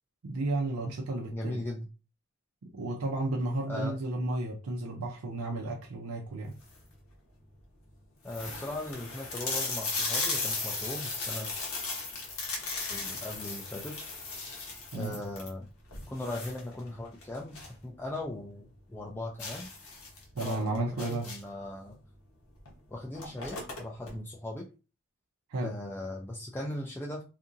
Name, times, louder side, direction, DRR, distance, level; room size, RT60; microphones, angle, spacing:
voice 1, 0.2-1.6 2.7-6.5 14.9-15.2 20.4-21.3 25.5-25.7, right 2 dB, 90° right, 0.5 m, -33 dB
voice 2, 1.3-1.9 3.7-4.0 8.2-11.5 12.9-14.0 14.9-15.7 16.1-17.6 17.8-19.7 20.4-22.0 22.9-24.7 25.6-27.2, left 1 dB, 10° left, 0.3 m, -38 dB
sound 1, 6.4-6.9 7.5-7.6 7.9-8.0 8.3-17.8 18.1-18.2 18.6-18.7 19.4-21.6 22.6-22.7 23.0-24.1, left 3 dB, 80° left, 0.9 m, -36 dB
2.8 x 2.5 x 2.5 m
head